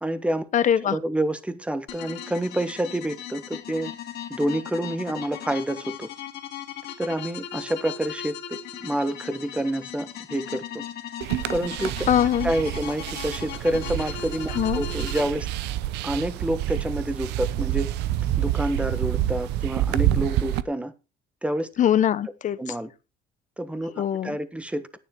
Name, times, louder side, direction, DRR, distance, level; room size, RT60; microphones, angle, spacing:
voice 1, 0.0-0.4 0.8-3.9 4.3-6.1 7.0-8.4 8.8-10.8 11.5-12.0 12.4-15.5 16.0-17.9 18.4-20.9 21.4-21.7 22.6-22.9 23.6-25.0, right 1 dB, 5° right, 1.3 m, -28 dB
voice 2, 0.5-1.0 12.1-12.5 14.5-14.8 21.8-22.6 24.0-24.4, left 10 dB, 45° left, 0.8 m, -22 dB
sound 1, 1.9-15.2, left 9 dB, 75° left, 2.2 m, -38 dB
sound 2, 11.2-20.6, right 13 dB, 85° right, 0.7 m, -28 dB
10.0 x 9.5 x 4.5 m
cardioid pair, 110°, 17 cm